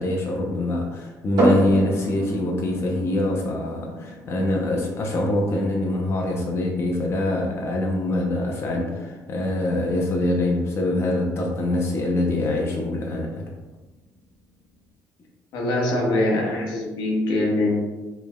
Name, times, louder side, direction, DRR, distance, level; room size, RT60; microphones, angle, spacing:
voice 1, 0.0-13.5, left 1 dB, 40° left, -1 dB, 0.7 m, -24 dB
sound 1, 1.4-14.9, right 1 dB, 85° right, 1.3 m, -32 dB
voice 2, 15.5-17.7, left 1 dB, 80° left, -2 dB, 1.0 m, -23 dB
5.0 x 3.3 x 2.2 m, 1.2 s
cardioid pair, 115°, 7 cm